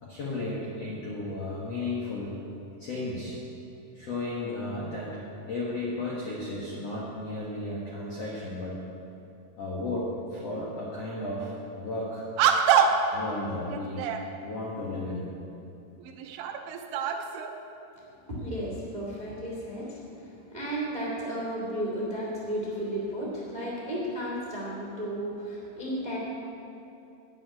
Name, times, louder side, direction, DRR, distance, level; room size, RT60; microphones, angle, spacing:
voice 1, 0.0-2.4 2.8-3.4 3.9-8.8 9.6-12.3 13.1-14.1 14.4-15.3, left 2 dB, 75° left, -6 dB, 1.4 m, -34 dB
sound 1, 11.4-11.6 12.4-13.2 13.7-14.3 15.3-15.4 16.0-17.6, right 7 dB, 85° right, 3.0 m, -25 dB
voice 2, 18.3-26.2, equal, 50° right, -4 dB, 0.5 m, -33 dB
11.0 x 7.7 x 9.5 m, 2.7 s
omnidirectional pair, 5.6 m